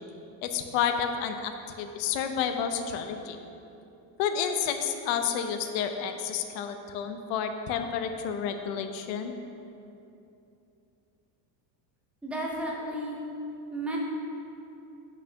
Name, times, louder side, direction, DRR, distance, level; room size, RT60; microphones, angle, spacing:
voice 1, 0.4-1.5 1.8-3.4 4.2-9.3, left 7 dB, 70° left, 7 dB, 0.7 m, -30 dB
voice 2, 12.2-13.2 13.7-14.0, right 1 dB, 5° right, -3 dB, 0.5 m, -33 dB
5.8 x 4.2 x 5.5 m, 2.8 s
cardioid pair, 155°, 46 cm